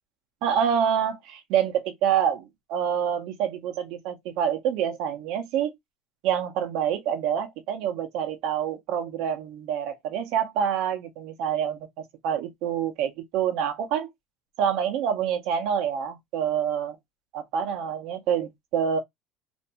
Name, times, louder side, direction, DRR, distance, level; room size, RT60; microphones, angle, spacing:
voice 1, 0.4-5.7 6.2-11.9 12.2-14.1 14.6-17.0 17.3-19.0, right 8 dB, 60° right, 0.6 m, -27 dB
2.5 x 2.2 x 2.8 m
cardioid pair, 165°, 0 cm